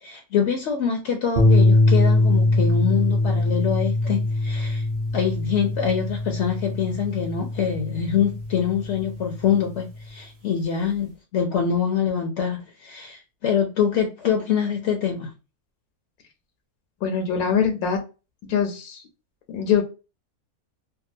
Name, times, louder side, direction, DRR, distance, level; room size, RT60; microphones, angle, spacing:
voice 1, 0.0-4.8 5.1-15.3, left 7 dB, 65° left, 0.7 m, -25 dB
sound 1, 1.4-9.8, left 2 dB, 55° right, 0.5 m, -22 dB
voice 2, 17.0-18.0 18.4-19.0 19.5-19.8, left 7 dB, 85° left, 1.1 m, -23 dB
2.8 x 2.3 x 2.5 m
omnidirectional pair, 1.6 m